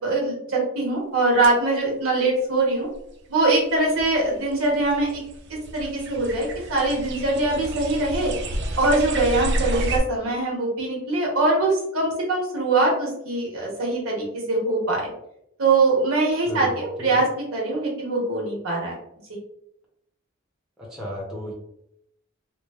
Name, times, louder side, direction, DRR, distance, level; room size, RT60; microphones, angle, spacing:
voice 1, 0.0-2.9 3.3-5.2 5.5-8.3 8.8-15.1 15.6-18.9, right 2 dB, 75° right, -2 dB, 0.9 m, -22 dB
sound 1, 3.0-3.1 3.7-10.0, right 1 dB, 55° right, 0.3 m, -31 dB
voice 2, 20.8-21.5, equal, ahead, -5 dB, 0.6 m, -34 dB
3.0 x 2.0 x 2.3 m, 0.77 s
head